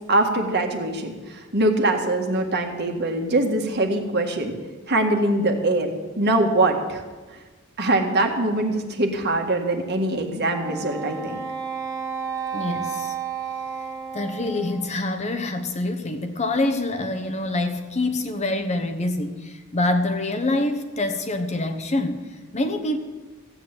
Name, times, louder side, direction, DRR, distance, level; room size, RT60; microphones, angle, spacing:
voice 1, 0.1-4.5 4.9-5.9 6.2-7.0 7.8-11.4, right 2 dB, 50° right, 4 dB, 1.8 m, -23 dB
Wind instrument woodwind instrument, 10.5-15.0, right 6 dB, 15° right, 1.7 m, -32 dB
voice 2, 12.5-13.1 14.1-23.0, left 2 dB, 30° left, 6 dB, 1.0 m, -26 dB
15.0 x 8.0 x 8.9 m, 1.3 s
head